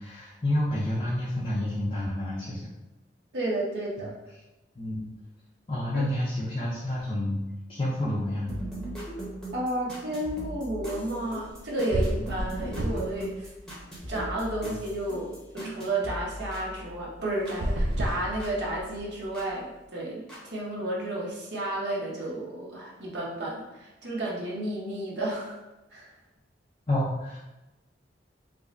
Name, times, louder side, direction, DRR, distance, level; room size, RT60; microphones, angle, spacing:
voice 1, 0.0-2.6 4.8-5.1 5.7-7.4 7.7-8.5 12.2-12.3 14.6-14.7 26.9-27.4, left 1 dB, 35° left, -6 dB, 0.5 m, -29 dB
voice 2, 3.3-4.1 5.9-6.0 9.5-13.5 14.1-25.6 25.9-26.1, right 1 dB, 70° right, -5 dB, 1.0 m, -32 dB
sound 1, 8.5-17.6 17.9-19.5 20.3-20.4, equal, 5° left, 0.9 m, -39 dB
sound 2, 11.5-11.6 11.9-13.2 13.6-14.7 17.4-19.0, right 1 dB, 90° right, 0.5 m, -30 dB
4.8 x 2.1 x 2.5 m, 1.0 s
head